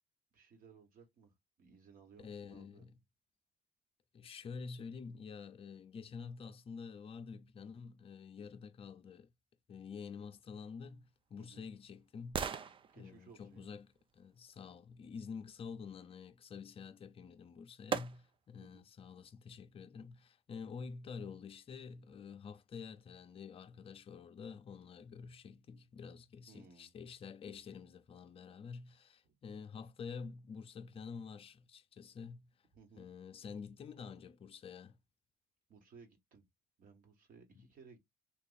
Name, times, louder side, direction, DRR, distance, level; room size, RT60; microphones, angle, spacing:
voice 1, 0.3-2.9 11.4-11.7 12.9-13.7 18.6-18.9 26.5-26.9 29.2-29.4 32.7-33.1 35.7-36.4 36.8-38.0, right 5 dB, 55° right, 1.3 m, -60 dB
voice 2, 2.2-2.9 4.1-9.3 9.7-12.5 12.9-13.9 14.1-32.5 33.0-35.0 37.5-37.7, left 5 dB, 35° left, 0.5 m, -48 dB
sound 1, 10.8-14.9 17.0-17.1 17.9-18.6 19.1-19.2, right 6 dB, 30° right, 0.4 m, -44 dB
3.0 x 2.4 x 3.9 m
cardioid pair, 110°, 17 cm